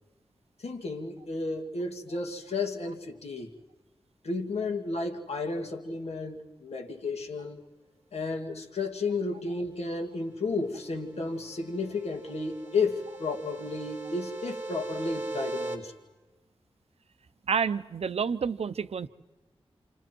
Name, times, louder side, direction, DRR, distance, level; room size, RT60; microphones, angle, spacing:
voice 1, 0.6-3.5 4.2-7.6 8.1-15.9, left 3 dB, 85° left, 3 dB, 2.2 m, -32 dB
sound 1, 10.8-15.8, right 2 dB, 25° right, 3.5 m, -39 dB
voice 2, 17.5-19.1, right 6 dB, 75° right, 14 dB, 0.7 m, -29 dB
28.0 x 28.0 x 4.5 m, 1.1 s
wide cardioid pair, 120°, 11 cm